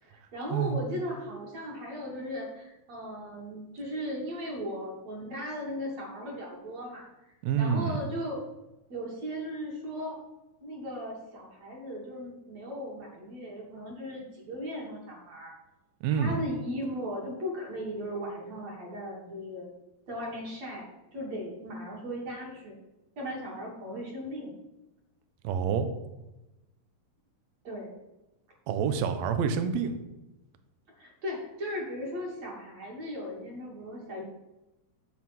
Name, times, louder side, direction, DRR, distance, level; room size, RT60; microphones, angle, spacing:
voice 1, 0.0-8.4 8.9-10.2 10.6-15.5 16.1-19.7 20.1-20.9 21.1-22.8 23.2-24.5 27.6-27.9 31.0-34.2, equal, 50° right, -3 dB, 3.4 m, -37 dB
voice 2, 7.4-8.0 16.0-16.4 25.4-25.9 28.7-30.0, right 7 dB, 70° right, 9 dB, 1.7 m, -27 dB
8.1 x 7.6 x 5.9 m, 0.97 s
omnidirectional pair, 4.1 m